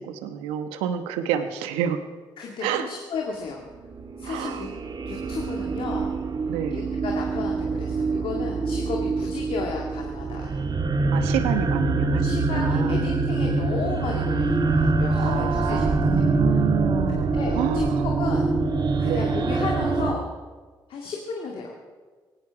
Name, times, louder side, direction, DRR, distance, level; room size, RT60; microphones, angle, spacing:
voice 1, 0.0-2.0 2.6-2.9 4.2-4.6 6.5-6.9 11.1-12.3 12.5-13.0 15.1-18.0 19.0-19.3, right 9 dB, 90° right, 9 dB, 1.1 m, -29 dB
voice 2, 2.4-3.7 4.2-4.7 5.1-6.2 6.7-10.6 12.2-16.3 17.3-18.5 19.0-20.3 20.9-21.7, left 4 dB, 70° left, 0 dB, 2.2 m, -34 dB
sound 1, 3.9-20.1, right 3 dB, 45° right, 1.5 m, -24 dB
17.5 x 17.0 x 4.8 m, 1.4 s
supercardioid pair, 55°, 10 cm